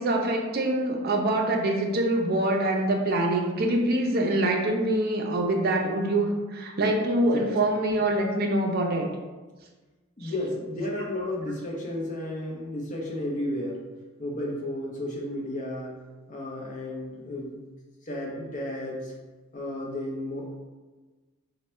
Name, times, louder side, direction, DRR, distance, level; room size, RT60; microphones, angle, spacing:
voice 1, 0.0-9.1 10.2-10.3, right 1 dB, 45° right, 1 dB, 0.4 m, -25 dB
voice 2, 10.2-13.8 14.2-16.0 16.3-17.5 18.0-19.1 19.5-20.5, left 1 dB, 35° left, -2 dB, 0.7 m, -33 dB
3.1 x 2.1 x 4.3 m, 1.3 s
head